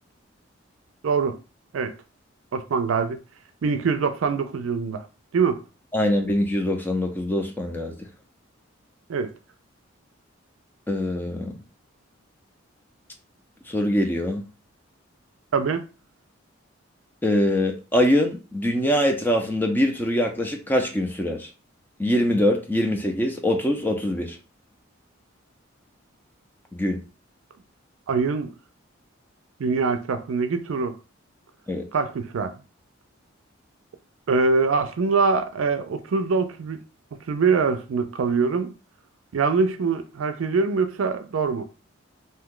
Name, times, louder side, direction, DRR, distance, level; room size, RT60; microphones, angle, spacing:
voice 1, 1.0-1.4 1.7-1.9 2.5-3.2 3.6-5.0 5.3-5.6 9.1-9.3 15.5-15.8 28.1-28.5 29.6-30.9 31.9-32.5 34.3-36.8 37.3-38.7 39.3-41.6, right 4 dB, 80° right, 0.4 m, -23 dB
voice 2, 5.9-8.1 10.9-11.6 13.7-14.4 17.2-21.5 22.0-24.4 26.7-27.0 31.7-31.9, left 1 dB, 10° left, 0.4 m, -23 dB
2.7 x 2.2 x 3.6 m
head